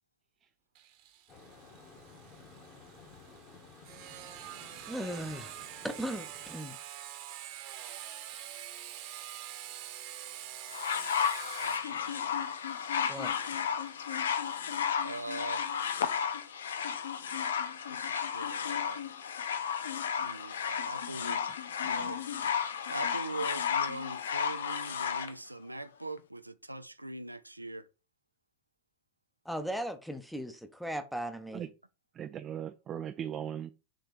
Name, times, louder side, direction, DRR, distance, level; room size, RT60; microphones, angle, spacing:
Sawing, 0.8-16.2, right 11 dB, 45° right, 1.1 m, -47 dB
sound 1, 1.3-6.5, left 4 dB, 30° left, 1.7 m, -54 dB
voice 1, 4.9-5.5 5.8-6.8 13.1-13.3 29.4-31.6, equal, ahead, 0.8 m, -37 dB
sound 2, 10.7-25.3 26.2-26.3, left 7 dB, 65° left, 0.6 m, -33 dB
voice 2, 11.6-12.5 15.0-15.6 17.9-19.1 20.2-21.4 21.8-22.2 22.9-27.9, right 2 dB, 85° right, 0.4 m, -42 dB
voice 3, 32.2-33.7, right 9 dB, 25° right, 0.4 m, -38 dB
6.4 x 3.5 x 4.5 m
figure-of-eight pair, 90°, 0 cm